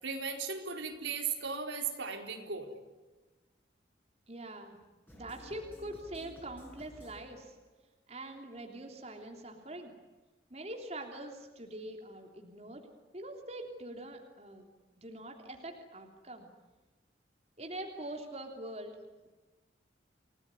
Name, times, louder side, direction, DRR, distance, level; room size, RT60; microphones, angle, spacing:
voice 1, 0.0-2.7, right 5 dB, 80° right, 3 dB, 4.4 m, -37 dB
voice 2, 4.3-4.8 5.1-7.5 8.1-9.9 10.5-12.9 13.1-14.7 15.0-16.5 17.6-19.0, right 1 dB, 35° right, 3 dB, 3.2 m, -44 dB
sound 1, 5.1-7.7, equal, 10° left, 6.5 m, -54 dB
29.5 x 19.0 x 9.7 m, 1.2 s
head